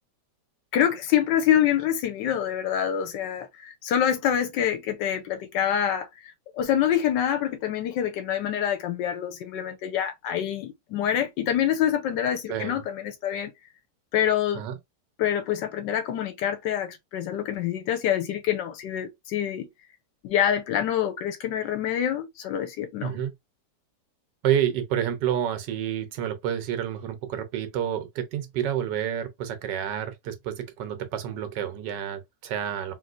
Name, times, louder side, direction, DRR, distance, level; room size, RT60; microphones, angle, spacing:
voice 1, 0.7-13.5 14.1-14.6 15.2-19.7 20.2-23.1, left 10 dB, 85° left, 1.3 m, -26 dB
voice 2, 12.5-12.8 14.5-14.8 23.0-23.3 24.4-32.9, right 10 dB, 75° right, 1.4 m, -29 dB
3.0 x 3.0 x 2.5 m
omnidirectional pair, 1.9 m